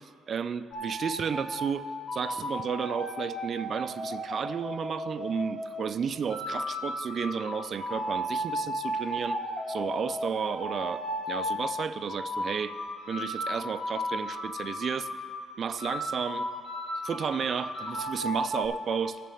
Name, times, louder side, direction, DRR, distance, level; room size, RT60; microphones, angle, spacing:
voice 1, 0.0-1.8 2.1-9.4 9.7-12.7 13.1-15.1 15.6-16.5 17.0-19.2, right 6 dB, 55° right, 13 dB, 0.4 m, -32 dB
sound 1, 0.7-1.6 2.1-5.8 6.3-11.6 12.1-15.4 15.8-18.7, equal, 60° left, 2.6 m, -34 dB
9.1 x 6.8 x 7.0 m, 2.3 s
cardioid pair, 90°, 0 cm